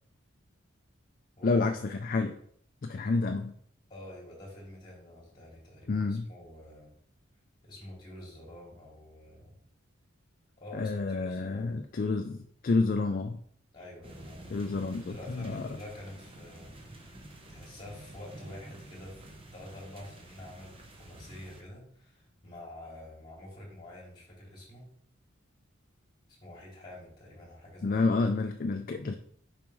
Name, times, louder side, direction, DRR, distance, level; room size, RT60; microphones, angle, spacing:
voice 1, 1.4-2.3 2.8-3.5 5.9-6.3 10.7-13.4 14.5-15.7 27.8-29.1, left 3 dB, 45° left, 6 dB, 0.4 m, -29 dB
voice 2, 3.9-6.9 7.6-9.6 10.6-11.8 13.7-14.7 15.0-17.2 17.5-24.9 26.3-27.9, left 1 dB, 25° left, -3 dB, 2.6 m, -48 dB
sound 1, 14.0-21.6, right 1 dB, 25° right, 0.8 m, -49 dB
7.1 x 5.0 x 3.1 m, 0.63 s
head